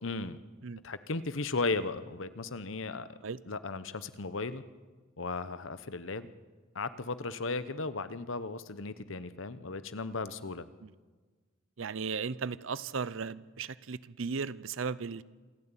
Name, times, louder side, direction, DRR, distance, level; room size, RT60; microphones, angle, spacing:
voice 1, 0.0-0.4 0.8-3.2 3.5-4.6 5.2-6.3 6.7-10.6, left 3 dB, 70° left, 13 dB, 1.0 m, -36 dB
voice 2, 11.8-15.2, right 5 dB, 75° right, 18 dB, 0.6 m, -36 dB
27.0 x 11.0 x 9.0 m, 1.4 s
head